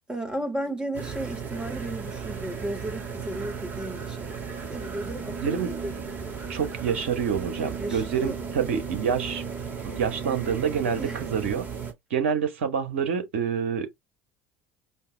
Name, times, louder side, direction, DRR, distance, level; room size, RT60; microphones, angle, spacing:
voice 1, 0.1-4.3 4.7-5.9 7.8-8.4 11.0-11.3, right 1 dB, 15° right, 1.7 m, -34 dB
sound 1, 0.9-11.9, right 6 dB, 30° right, 2.2 m, -35 dB
voice 2, 6.5-9.4 9.8-11.6 12.1-13.9, right 7 dB, 75° right, 1.1 m, -27 dB
5.3 x 2.5 x 3.3 m
figure-of-eight pair, 70°, 7 cm